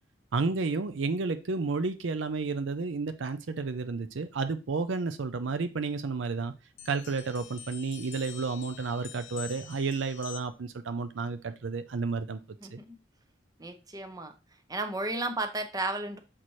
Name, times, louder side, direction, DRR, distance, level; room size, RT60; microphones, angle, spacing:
voice 1, 0.3-6.5 6.9-12.4 12.7-12.8, right 4 dB, 70° right, 0.5 m, -31 dB
sound 1, 6.8-10.7, left 11 dB, 90° left, 0.7 m, -46 dB
voice 2, 13.6-14.3 14.7-16.2, right 2 dB, 20° right, 0.8 m, -33 dB
7.4 x 4.2 x 3.1 m
head